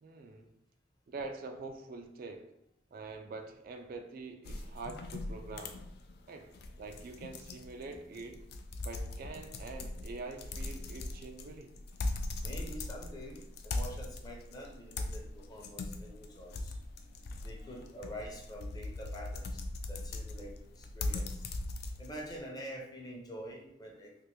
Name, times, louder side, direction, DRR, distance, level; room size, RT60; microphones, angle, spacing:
voice 1, 0.0-0.5 1.1-2.5 2.9-5.8 6.3-6.5 6.8-8.4 8.8-11.7, right 3 dB, 50° right, 5 dB, 0.3 m, -45 dB
sound 1, 4.4-22.4, left 2 dB, 55° left, 0.3 m, -40 dB
voice 2, 12.4-16.7 17.4-19.6 19.9-21.4 22.0-24.2, equal, 20° left, -1 dB, 0.6 m, -46 dB
3.4 x 2.5 x 3.0 m, 0.77 s
head